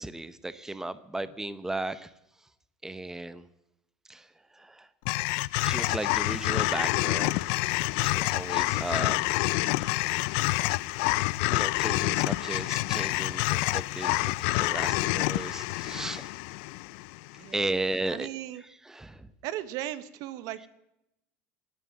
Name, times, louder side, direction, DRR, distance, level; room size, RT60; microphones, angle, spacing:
voice 1, 0.0-2.1 2.4-2.5 2.8-3.5 4.1-4.9 5.6-9.3 9.9-10.3 11.5-16.3 17.3-18.3 18.6-19.3, right 2 dB, 5° right, 15 dB, 0.8 m, -36 dB
sound 1, 5.1-17.4, left 22 dB, 70° left, 0.5 m, -27 dB
voice 2, 18.1-18.6 19.4-20.7, right 13 dB, 60° right, 15 dB, 1.2 m, -36 dB
16.5 x 9.4 x 8.7 m, 0.86 s
supercardioid pair, 110°, 7 cm